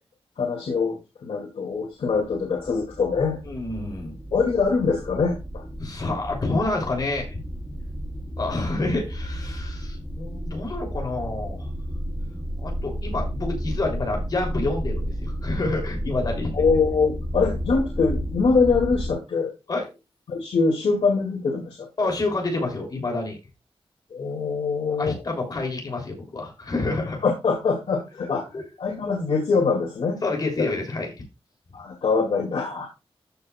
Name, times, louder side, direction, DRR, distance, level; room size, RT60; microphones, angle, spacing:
voice 1, 0.4-3.4 4.3-5.6 16.5-19.5 20.3-22.1 24.1-25.2 27.2-28.5 28.8-30.2 31.7-32.9, left 4 dB, 90° left, -1 dB, 2.4 m, -23 dB
sound 1, 2.1-19.1, equal, ahead, 0.9 m, -32 dB
voice 2, 3.4-4.2 5.8-7.4 8.4-11.7 12.6-16.5 19.7-19.9 22.0-23.4 24.9-27.2 28.5-28.6 30.2-31.2, left 2 dB, 40° left, 1 dB, 3.2 m, -28 dB
14.0 x 6.3 x 2.4 m, 0.26 s
wide cardioid pair, 180°, 10 cm